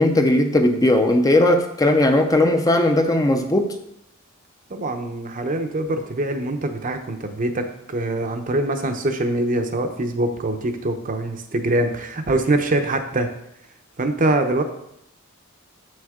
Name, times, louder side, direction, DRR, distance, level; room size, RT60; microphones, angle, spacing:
voice 1, 0.0-3.7, left 1 dB, 15° left, 5 dB, 0.5 m, -17 dB
voice 2, 4.7-13.3 14.0-14.6, right 2 dB, 40° right, 6 dB, 0.7 m, -23 dB
6.8 x 6.4 x 3.6 m, 0.77 s
head